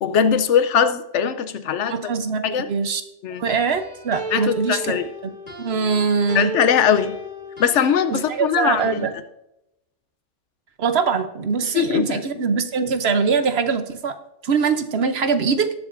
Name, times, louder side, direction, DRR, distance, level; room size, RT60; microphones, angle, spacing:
voice 1, 0.0-1.9 2.4-2.7 3.2-3.5 4.3-5.0 6.3-7.2 7.6-9.1 11.6-12.4, left 8 dB, 70° left, 11 dB, 1.0 m, -21 dB
voice 2, 1.9-3.0 3.4-4.8 5.6-6.5 8.1-9.1 10.8-14.2 14.4-15.7, right 5 dB, 60° right, 9 dB, 1.0 m, -22 dB
sound 1, 3.5-6.0 6.3-8.4 8.8-9.1, equal, 40° left, 2.0 m, -33 dB
19.5 x 7.2 x 2.6 m, 0.85 s
omnidirectional pair, 1.3 m